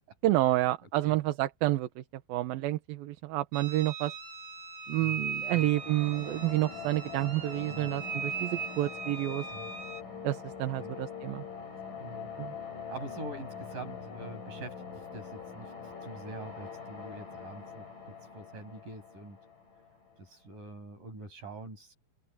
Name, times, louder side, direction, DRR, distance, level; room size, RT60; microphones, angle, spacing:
voice 1, 0.2-1.9 2.3-4.1 4.9-9.5 10.2-11.4 12.4-12.5, right 16 dB, 75° right, 2.7 m, -29 dB
sound 1, 3.5-10.0, right 5 dB, 25° right, 8.1 m, -39 dB
sound 2, 5.5-20.2, left 6 dB, 55° left, 7.5 m, -44 dB
voice 2, 12.0-12.3 12.9-14.8 15.1-15.7 16.0-19.4 20.2-21.9, right 2 dB, 55° right, 9.3 m, -45 dB
omnidirectional pair, 4.4 m